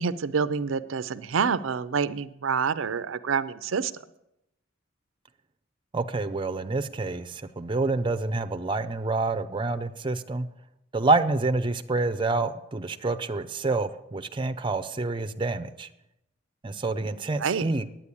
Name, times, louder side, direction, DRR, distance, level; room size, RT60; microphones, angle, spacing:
voice 1, 0.0-3.9 17.4-17.7, right 6 dB, 70° right, 15 dB, 0.5 m, -27 dB
voice 2, 5.9-10.5 10.9-15.9 16.6-17.8, right 3 dB, 25° right, 9 dB, 0.5 m, -27 dB
9.7 x 9.1 x 8.5 m, 0.84 s
head